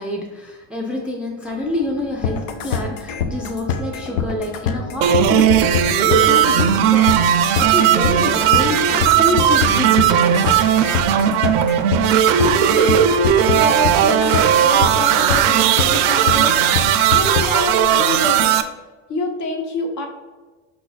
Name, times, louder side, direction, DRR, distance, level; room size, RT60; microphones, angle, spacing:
voice 1, 0.0-5.6 6.0-7.2 7.6-10.4, left 1 dB, 5° right, -2 dB, 0.5 m, -26 dB
sound 1, 1.4-17.6, left 2 dB, 25° left, 0.9 m, -39 dB
sound 2, 2.2-17.7, left 7 dB, 90° left, 0.6 m, -24 dB
sound 3, 5.0-18.6, right 9 dB, 70° right, 0.5 m, -16 dB
voice 2, 12.4-13.1 13.5-16.6 17.1-18.6 19.1-20.1, left 2 dB, 50° left, 3 dB, 1.0 m, -27 dB
5.1 x 2.4 x 4.0 m, 1.3 s
supercardioid pair, 120°, 37 cm